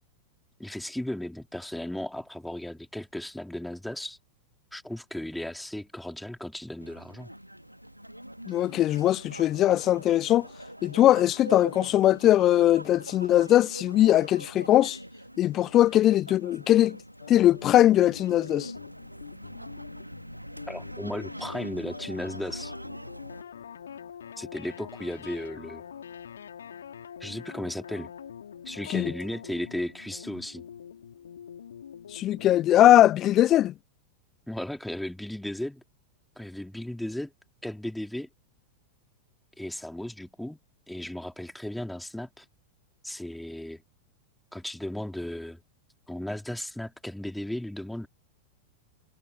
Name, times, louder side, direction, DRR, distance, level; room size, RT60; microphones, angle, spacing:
voice 1, 0.6-4.2 4.7-7.3 20.7-22.7 24.4-25.8 27.2-28.1 28.6-30.6 34.5-35.8 36.4-37.3 37.6-38.3 39.6-40.6 40.9-42.4 43.0-43.8 44.5-45.6 46.1-48.1, left 1 dB, 5° left, 2.9 m, -35 dB
sound 1, 6.8-23.4, equal, 90° right, 2.3 m, -43 dB
voice 2, 8.5-10.5 10.8-15.0 15.4-17.0 17.3-18.7 28.9-29.1 32.1-33.7, left 13 dB, 30° left, 1.2 m, -21 dB
sound 2, 17.2-33.1, left 8 dB, 65° left, 4.3 m, -45 dB
figure-of-eight pair, 90°, 0 cm